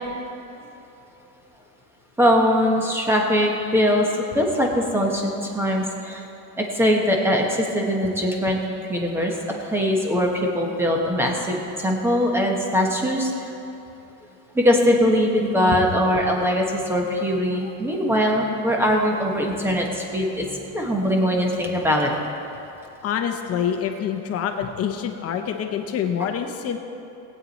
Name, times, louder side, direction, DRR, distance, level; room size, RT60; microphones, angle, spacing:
voice 1, 2.2-4.1 4.3-6.2 6.6-8.6 8.9-13.5 14.5-22.1, equal, 5° right, 0 dB, 1.2 m, -21 dB
voice 2, 23.0-26.8, left 8 dB, 35° left, 5 dB, 0.9 m, -26 dB
19.0 x 8.7 x 4.1 m, 2.9 s
cardioid pair, 165°, 42 cm